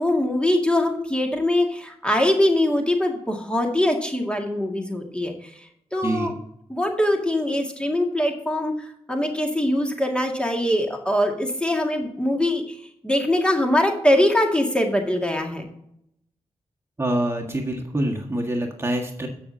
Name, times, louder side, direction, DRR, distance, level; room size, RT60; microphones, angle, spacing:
voice 1, 0.0-5.3 5.9-6.3 6.7-8.7 9.1-12.6 13.0-15.7, left 1 dB, 10° left, 2 dB, 2.1 m, -22 dB
voice 2, 6.0-6.3 17.0-19.3, right 1 dB, 25° right, 0 dB, 1.7 m, -25 dB
15.5 x 6.2 x 2.8 m, 0.75 s
cardioid pair, 50°, 11 cm